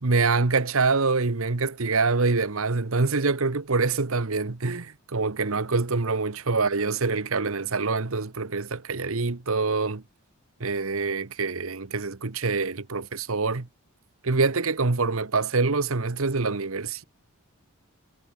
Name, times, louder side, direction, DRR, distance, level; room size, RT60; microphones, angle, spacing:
voice 1, 0.0-10.0 10.6-13.7 14.2-17.0, right 4 dB, 65° right, 1.2 m, -25 dB
head